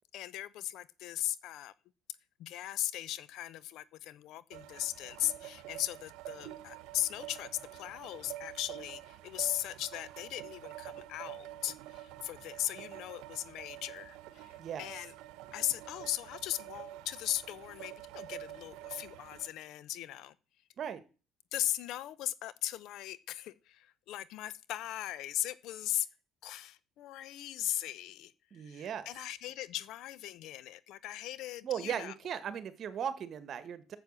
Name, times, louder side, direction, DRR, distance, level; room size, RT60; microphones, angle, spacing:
voice 1, 0.1-1.7 2.4-15.1 15.5-20.3 21.5-26.1 26.4-32.1, left 13 dB, 70° left, 0.7 m, -38 dB
sound 1, 4.5-19.5, right 14 dB, 80° right, 0.9 m, -48 dB
voice 2, 28.5-29.1 31.6-34.0, right 8 dB, 50° right, 1.5 m, -37 dB
9.1 x 7.3 x 7.5 m
supercardioid pair, 95°, 0 cm